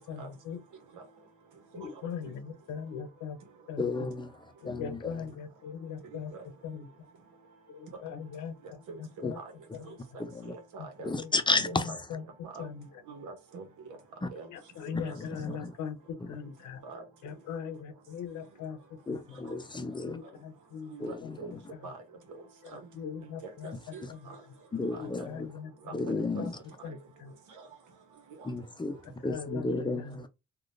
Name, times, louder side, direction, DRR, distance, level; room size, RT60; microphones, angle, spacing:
voice 1, 0.1-0.6 1.7-3.4 3.7-4.1 4.6-6.3 6.6-7.1 7.7-9.4 9.7-10.0 10.8-11.4 11.7-12.3 12.6-13.0 14.5-16.8 17.2-19.4 20.0-21.4 21.7-21.9 22.6-24.5 25.0-26.5 26.8-27.3 29.0-30.3, left 7 dB, 80° left, 0.7 m, -41 dB
voice 2, 3.8-4.3 4.7-4.8 9.2-9.3 10.4-10.5 11.0-11.8 14.2-14.3 14.9-15.0 15.4-15.6 19.1-20.2 21.0-21.3 24.7-25.5 25.9-26.6 28.4-29.0 29.2-30.3, left 3 dB, 15° left, 0.6 m, -32 dB
voice 3, 9.8-11.1 11.5-12.0 12.4-12.7 13.1-13.6 14.3-14.5 15.1-15.2 16.8-17.0 19.4-19.5 20.9-21.5 21.8-22.0 22.7-22.8 23.4-24.4 25.2-25.3 25.9-26.4 26.9-27.0, right 4 dB, 85° right, 1.0 m, -44 dB
3.5 x 2.4 x 2.5 m
cardioid pair, 90°, 30 cm